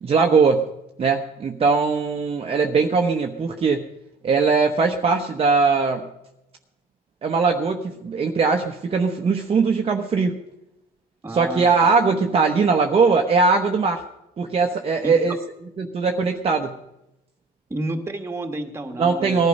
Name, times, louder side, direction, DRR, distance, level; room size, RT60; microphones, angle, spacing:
voice 1, 0.0-0.7 1.0-3.8 4.2-6.1 7.2-10.4 11.3-14.0 14.4-15.3 15.8-16.7 19.0-19.5, right 4 dB, 35° right, 3 dB, 1.1 m, -20 dB
voice 2, 11.2-11.9 15.0-15.2 17.7-19.5, right 2 dB, 15° right, 4 dB, 1.9 m, -30 dB
19.5 x 11.5 x 5.5 m, 0.91 s
cardioid pair, 110°, 17 cm